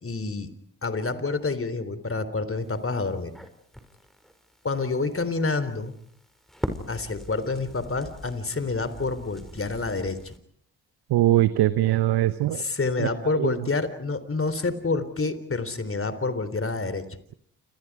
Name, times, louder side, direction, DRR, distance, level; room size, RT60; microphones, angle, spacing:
voice 1, 0.0-0.5 0.8-3.3 4.6-5.9 6.9-10.3 12.6-17.0, left 3 dB, 30° left, 13 dB, 3.7 m, -28 dB
Crackle, 2.6-10.4, equal, ahead, 5.5 m, -41 dB
voice 2, 11.1-12.6 13.0-13.1 13.4-13.7, right 14 dB, 70° right, 13 dB, 1.1 m, -22 dB
29.0 x 28.5 x 4.9 m, 0.68 s
hypercardioid pair, 40°, 40 cm